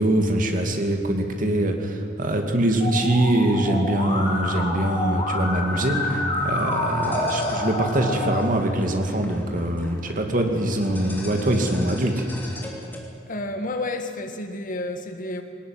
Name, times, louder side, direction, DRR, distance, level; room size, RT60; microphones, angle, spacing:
voice 1, 0.0-12.2, right 1 dB, 45° right, 4 dB, 2.5 m, -23 dB
Musical instrument, 2.8-8.4, left 1 dB, 25° left, 4.7 m, -28 dB
sound 1, 2.8-13.0, left 1 dB, 10° left, 3.1 m, -41 dB
voice 2, 13.3-15.4, left 2 dB, 45° left, 6 dB, 2.0 m, -30 dB
21.0 x 18.5 x 9.5 m, 2.5 s
head